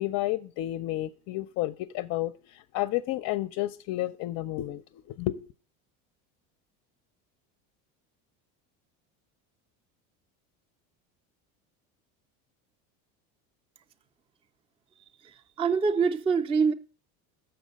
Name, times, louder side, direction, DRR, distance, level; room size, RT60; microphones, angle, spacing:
voice 1, 0.0-5.4, left 15 dB, 50° left, 0.4 m, -31 dB
voice 2, 15.6-16.7, right 5 dB, 15° right, 0.4 m, -24 dB
6.9 x 5.6 x 5.0 m
supercardioid pair, 120°, 38 cm